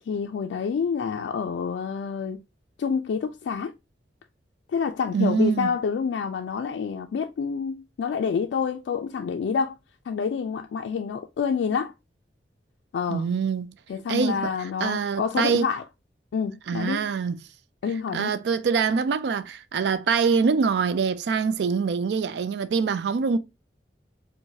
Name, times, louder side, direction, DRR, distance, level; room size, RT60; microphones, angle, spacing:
voice 1, 0.1-2.4 2.8-3.7 4.7-9.7 10.1-11.9 12.9-13.3 13.9-15.8 16.3-17.1 17.8-18.3, left 6 dB, 80° left, 0.3 m, -28 dB
voice 2, 5.1-5.7 13.1-13.7 14.1-15.7 16.7-17.4 18.1-23.4, right 5 dB, 70° right, 0.3 m, -24 dB
4.6 x 2.1 x 2.6 m
head